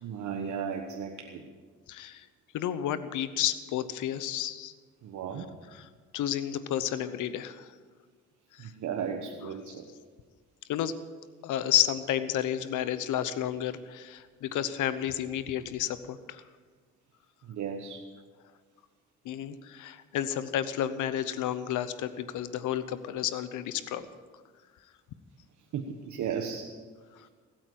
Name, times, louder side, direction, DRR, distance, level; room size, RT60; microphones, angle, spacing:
voice 1, 0.0-1.5 5.0-5.5 8.6-9.8 17.5-18.0 25.7-26.7, right 7 dB, 70° right, 3 dB, 1.3 m, -35 dB
voice 2, 1.9-2.2 2.5-4.7 5.7-7.7 8.5-8.7 9.7-9.8 10.7-10.9 11.4-16.4 19.2-24.1, left 11 dB, 85° left, 13 dB, 0.9 m, -31 dB
20.5 x 8.8 x 7.8 m, 1.5 s
cardioid pair, 90°, 30 cm